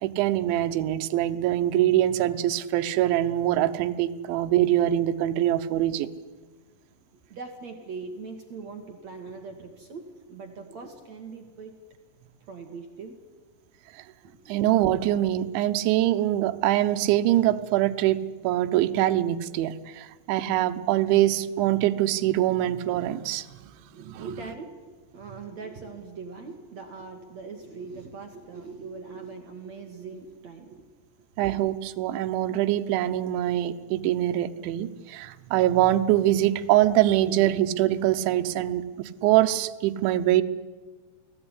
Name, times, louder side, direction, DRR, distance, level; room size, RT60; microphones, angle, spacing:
voice 1, 0.0-6.1 13.9-14.0 14.5-23.5 24.0-24.3 31.4-40.4, right 13 dB, 80° right, 9 dB, 3.3 m, -24 dB
voice 2, 7.3-11.8 12.5-13.2 14.2-14.5 23.9-30.9, right 4 dB, 50° right, 4 dB, 2.2 m, -41 dB
29.5 x 19.0 x 9.9 m, 1.4 s
omnidirectional pair, 5.5 m